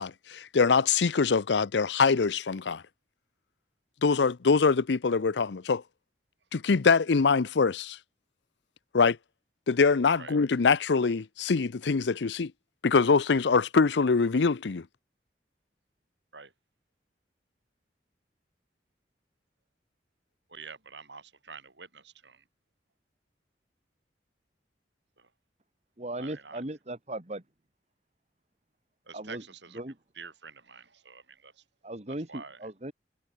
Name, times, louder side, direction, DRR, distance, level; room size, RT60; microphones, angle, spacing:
voice 1, 0.0-2.8 4.0-5.8 6.5-8.0 8.9-9.2 9.7-12.5 12.8-14.9, left 4 dB, 80° left, 0.6 m, -24 dB
voice 2, 20.5-22.4 25.2-25.3 26.2-26.6 29.1-29.8 30.1-31.6 32.1-32.6, right 5 dB, 80° right, 7.8 m, -47 dB
voice 3, 26.0-27.4 29.1-29.4 29.7-30.0 31.8-32.9, right 1 dB, 40° right, 1.9 m, -37 dB
head